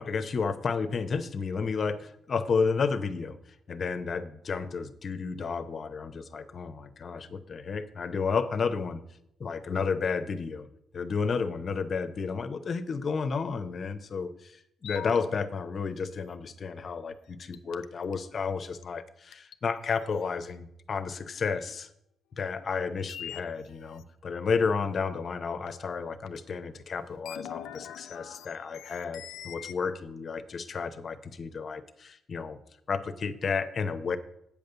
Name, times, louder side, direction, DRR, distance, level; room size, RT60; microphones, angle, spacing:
voice 1, 0.0-3.4 3.7-9.0 9.4-10.7 10.9-21.9 22.4-32.6 32.9-34.2, left 5 dB, 45° left, 11 dB, 0.7 m, -32 dB
sound 1, 14.8-15.2 17.5-18.1 18.8-18.9 19.3-19.5 20.2-20.3 23.1-24.0 25.7-25.8 26.3-26.4 27.1-29.7, left 11 dB, 85° left, 0.4 m, -42 dB
8.6 x 5.3 x 6.8 m, 0.78 s
cardioid pair, 90°, 0 cm